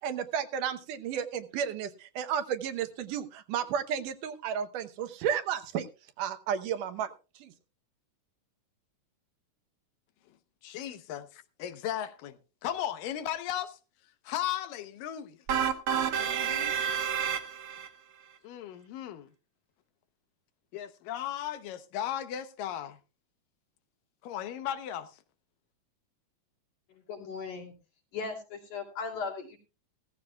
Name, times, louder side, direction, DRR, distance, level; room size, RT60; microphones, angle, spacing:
voice 1, 0.0-5.9 6.2-7.5, right 8 dB, 75° right, 2.5 m, -33 dB
voice 2, 10.6-13.8 14.2-15.4 16.2-16.7 18.4-19.3 20.7-23.0 24.2-25.2, left 11 dB, 85° left, 2.6 m, -36 dB
sound 1, 15.5-17.9, right 8 dB, 55° right, 1.7 m, -29 dB
voice 3, 26.9-27.7 28.1-29.6, left 5 dB, 70° left, 4.3 m, -38 dB
16.5 x 14.5 x 2.3 m
omnidirectional pair, 3.8 m